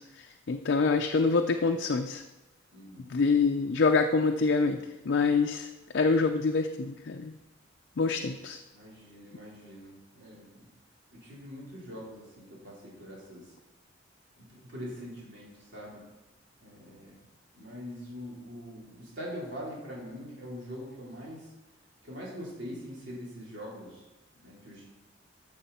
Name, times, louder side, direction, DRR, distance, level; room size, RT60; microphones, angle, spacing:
voice 1, 0.0-2.2 3.1-4.8 5.1-5.7 5.9-7.3 8.0-8.6, left 4 dB, 60° left, 5 dB, 0.5 m, -26 dB
voice 2, 2.7-3.2 8.1-8.4 8.7-10.7 11.1-13.5 14.4-16.1 16.6-17.2 17.5-21.5 22.0-24.0 24.4-24.8, equal, 65° right, -6 dB, 4.0 m, -43 dB
12.5 x 6.6 x 4.2 m, 1.1 s
head